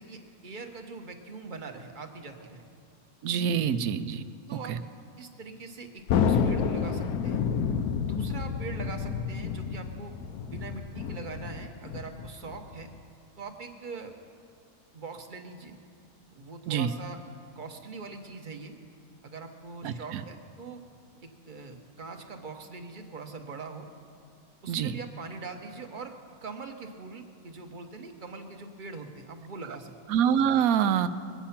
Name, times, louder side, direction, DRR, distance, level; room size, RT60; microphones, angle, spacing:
voice 1, 0.0-2.6 4.5-4.7 5.2-7.4 8.0-10.1 10.5-12.9 13.4-14.1 14.9-15.8 16.3-17.2 17.5-18.7 19.2-20.8 21.2-23.9 24.6-26.1 26.4-29.9, right 4 dB, 35° right, 5 dB, 1.0 m, -42 dB
voice 2, 3.2-4.2 4.7-4.8 16.7-16.9 19.8-20.2 24.7-25.0 30.1-31.1, right 8 dB, 75° right, 12 dB, 1.1 m, -25 dB
Thunder, 6.1-12.9, left 6 dB, 90° left, 1.2 m, -29 dB
21.5 x 8.8 x 5.8 m, 2.3 s
omnidirectional pair, 1.6 m